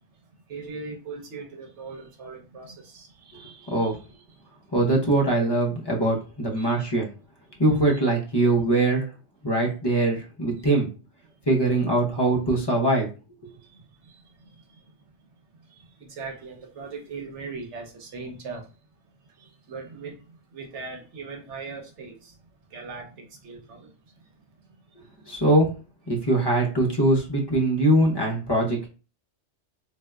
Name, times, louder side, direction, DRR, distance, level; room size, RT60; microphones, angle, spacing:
voice 1, 0.5-4.5 6.6-6.9 7.9-8.0 10.6-10.7 13.5-14.9 15.2-15.3 15.6-18.8 19.2-22.4 22.7-24.3 24.6-25.4, right 4 dB, 75° right, 1.1 m, -41 dB
voice 2, 4.7-7.1 7.6-9.1 9.4-10.9 11.5-13.1 25.3-25.7 26.1-28.9, right 2 dB, 25° left, 0.7 m, -22 dB
3.5 x 2.6 x 2.2 m
omnidirectional pair, 1.2 m